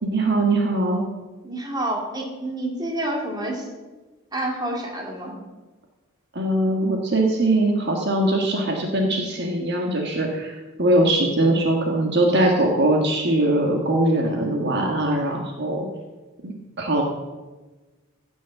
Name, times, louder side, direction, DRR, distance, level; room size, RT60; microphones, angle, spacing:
voice 1, 0.0-1.1 6.3-15.9 16.4-17.0, right 1 dB, 50° right, 1 dB, 1.4 m, -21 dB
voice 2, 1.4-3.7 4.3-5.3, right 1 dB, 20° right, 0 dB, 2.2 m, -28 dB
15.5 x 6.3 x 7.1 m, 1.2 s
head